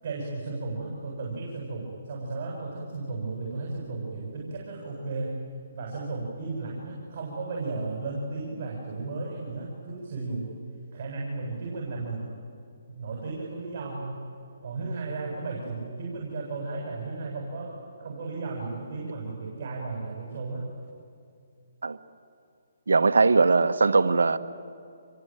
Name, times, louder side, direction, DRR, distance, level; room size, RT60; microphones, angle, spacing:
voice 1, 0.0-5.4 5.7-10.6 10.9-12.3 12.9-14.2 14.6-20.7, right 3 dB, 45° right, 7.9 m, -34 dB
voice 2, 22.9-24.4, right 4 dB, 90° right, 1.4 m, -20 dB
27.0 x 23.5 x 9.2 m
hypercardioid pair, 155°, 0 cm